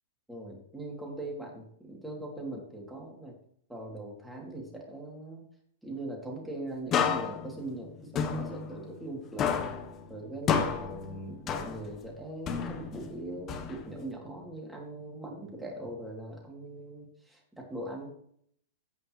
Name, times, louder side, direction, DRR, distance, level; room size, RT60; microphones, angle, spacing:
voice 1, 0.3-3.4 3.7-5.4 5.8-9.6 10.1-18.1, right 1 dB, 5° right, -2 dB, 2.6 m, -41 dB
sound 1, 6.9-9.1 9.4-12.1 12.5-14.1, left 7 dB, 25° left, 0.9 m, -31 dB
15.5 x 5.4 x 3.1 m, 0.66 s
hypercardioid pair, 145°, 0 cm